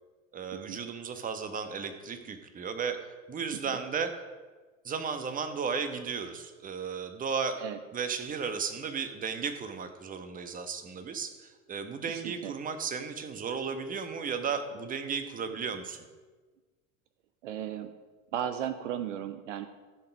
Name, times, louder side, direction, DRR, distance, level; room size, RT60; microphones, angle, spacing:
voice 1, 0.3-3.0 3.3-4.1 4.8-7.6 7.9-16.0, right 6 dB, 20° right, 8 dB, 1.1 m, -34 dB
voice 2, 12.1-12.5 17.4-17.9 18.3-19.7, right 10 dB, 60° right, 10 dB, 0.8 m, -36 dB
15.0 x 5.9 x 5.2 m, 1.3 s
figure-of-eight pair, 85°, 41 cm